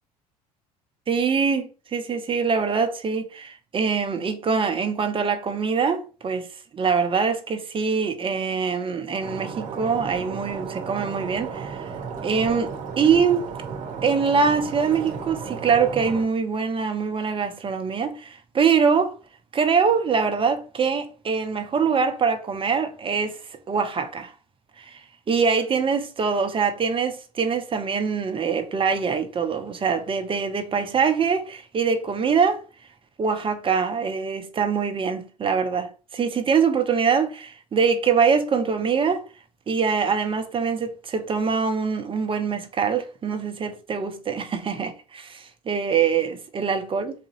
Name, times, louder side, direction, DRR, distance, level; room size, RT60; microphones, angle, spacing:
voice 1, 1.1-6.5 6.7-11.9 12.2-13.5 14.0-19.1 19.5-23.4 23.7-24.3 24.8-25.0 25.3-32.6 33.2-39.2 39.7-47.1, right 6 dB, 30° right, 0.7 m, -24 dB
Stream, 9.2-16.2, right 6 dB, 45° right, 1.0 m, -34 dB
4.1 x 2.6 x 2.7 m
hypercardioid pair, 65°, 19 cm